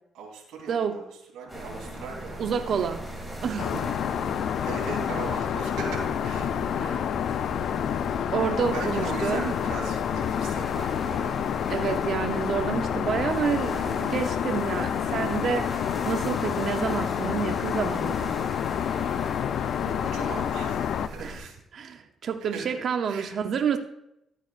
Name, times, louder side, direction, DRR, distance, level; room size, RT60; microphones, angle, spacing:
voice 1, 0.1-1.0 1.3-2.4 4.6-7.6 8.3-11.4 19.8-21.6 22.4-22.8 23.1-23.3, right 4 dB, 85° right, -1 dB, 3.0 m, -39 dB
voice 2, 0.7-1.0 2.4-3.0 3.4-3.9 6.8-7.1 8.3-9.5 11.7-18.3 21.2-23.8, right 7 dB, 60° right, 6 dB, 0.7 m, -29 dB
sound 1, 1.5-21.4, equal, 10° left, 2.8 m, -39 dB
Aircraft, 3.6-21.1, left 9 dB, 70° left, 0.3 m, -28 dB
13.0 x 9.2 x 2.5 m, 0.82 s
cardioid pair, 90°, 0 cm